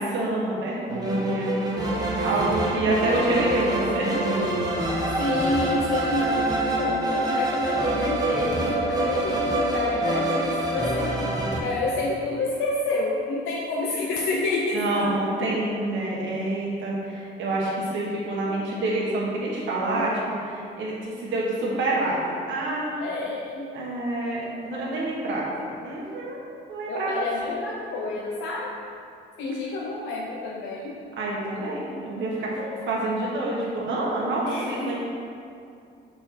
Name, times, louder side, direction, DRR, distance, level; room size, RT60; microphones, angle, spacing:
voice 1, 0.0-1.5 2.2-4.7 14.7-23.0 23.7-27.1 31.2-32.5 32.9-35.0, right 2 dB, 80° right, -5 dB, 1.4 m, -27 dB
sound 1, 0.9-11.6, right 1 dB, 20° right, 1.0 m, -26 dB
voice 2, 2.1-2.7 2.9-3.2 4.5-15.2 18.4-18.8 19.9-20.1 23.0-23.7 26.9-28.8 29.4-31.0 32.6-32.8 34.5-35.0, left 2 dB, 90° left, -3 dB, 0.6 m, -29 dB
5.7 x 4.3 x 4.2 m, 2.5 s
cardioid pair, 90°, 20 cm